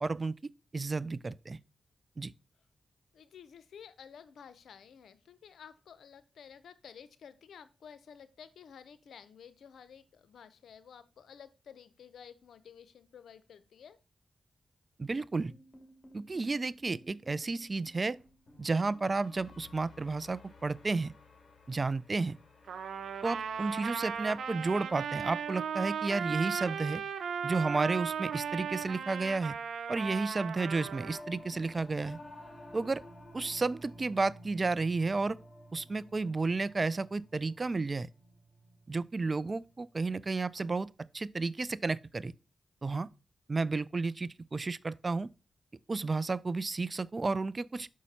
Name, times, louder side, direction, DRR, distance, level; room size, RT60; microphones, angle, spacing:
voice 1, 0.0-1.6 2.2-2.3 15.0-15.5 16.1-18.2 18.6-21.1 21.7-22.3 23.2-27.0 27.4-29.6 29.9-32.2 32.7-33.0 33.3-35.4 35.7-38.1 38.9-40.9 41.1-42.3 42.8-43.1 43.5-45.3 45.9-47.9, right 3 dB, 40° right, 0.4 m, -32 dB
voice 2, 3.1-14.0, left 7 dB, 85° left, 0.7 m, -52 dB
sound 1, 15.4-27.6, left 2 dB, 50° left, 2.5 m, -59 dB
Trumpet, 22.7-31.2, right 7 dB, 80° right, 0.8 m, -36 dB
Singing / Musical instrument, 30.6-40.1, equal, 20° left, 3.7 m, -52 dB
6.1 x 5.6 x 4.2 m
cardioid pair, 55°, 0 cm